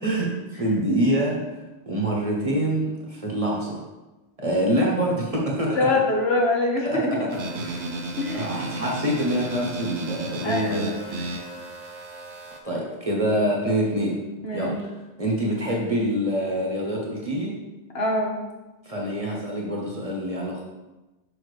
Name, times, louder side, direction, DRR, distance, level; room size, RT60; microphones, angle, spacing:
voice 1, 0.0-3.8 4.4-5.8 6.8-7.0 7.5-7.8 8.3-11.5 12.6-14.2 14.5-14.9 15.2-17.6 18.8-20.6, right 1 dB, 30° right, -3 dB, 1.2 m, -26 dB
voice 2, 5.7-7.2 7.8-8.5 9.2-9.4 10.4-11.2 14.4-14.8 17.9-18.4, left 2 dB, 65° left, -1 dB, 1.4 m, -25 dB
sound 1, 7.3-12.6, right 2 dB, 85° right, 1.1 m, -33 dB
6.4 x 5.8 x 3.2 m, 1.1 s
omnidirectional pair, 1.1 m